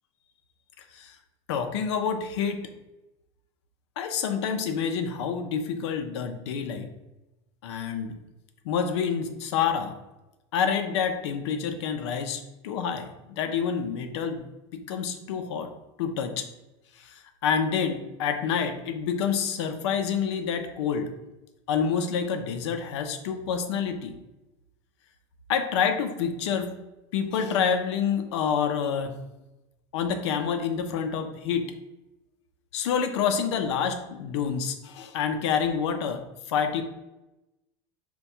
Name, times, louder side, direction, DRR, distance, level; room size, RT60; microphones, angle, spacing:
voice 1, 1.5-2.6 4.0-6.9 7.6-8.2 8.6-10.0 10.5-14.4 14.7-15.7 16.0-16.5 17.0-21.1 21.7-24.1 25.5-26.7 27.1-29.2 29.9-31.7 32.7-36.2 36.5-36.8, left 7 dB, 85° left, 6 dB, 0.5 m, -28 dB
3.4 x 2.3 x 4.2 m, 0.99 s
supercardioid pair, 130°, 14 cm